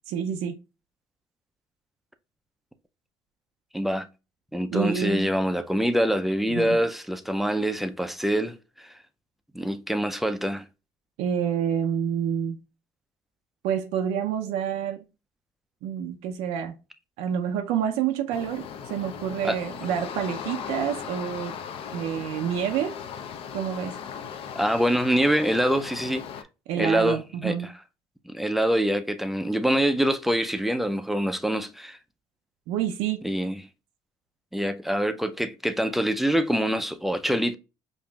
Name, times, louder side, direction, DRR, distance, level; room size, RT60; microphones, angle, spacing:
voice 1, 0.1-0.6 4.7-5.3 6.5-6.8 11.2-12.6 13.6-15.0 15.8-16.7 17.2-21.5 21.9-22.9 23.5-24.0 26.7-27.7 32.7-33.2, right 8 dB, 90° right, 0.4 m, -28 dB
voice 2, 3.7-4.1 4.5-8.9 9.5-10.6 19.4-19.6 24.6-26.2 26.8-27.6 28.3-32.0 33.2-33.6 34.5-37.6, equal, ahead, 0.4 m, -25 dB
sound 1, 18.3-26.4, left 7 dB, 60° left, 0.5 m, -38 dB
5.2 x 2.5 x 2.2 m
cardioid pair, 110°, 11 cm